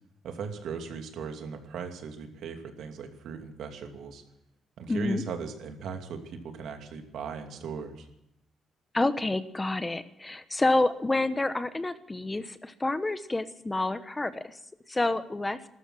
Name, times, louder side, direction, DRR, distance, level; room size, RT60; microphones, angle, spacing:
voice 1, 0.2-4.2 4.8-8.1, right 6 dB, 75° right, 5 dB, 2.7 m, -38 dB
voice 2, 4.9-5.2 8.9-14.6 14.9-15.6, left 2 dB, 20° left, 12 dB, 1.1 m, -28 dB
14.0 x 13.0 x 7.6 m, 0.80 s
cardioid pair, 90°, 0 cm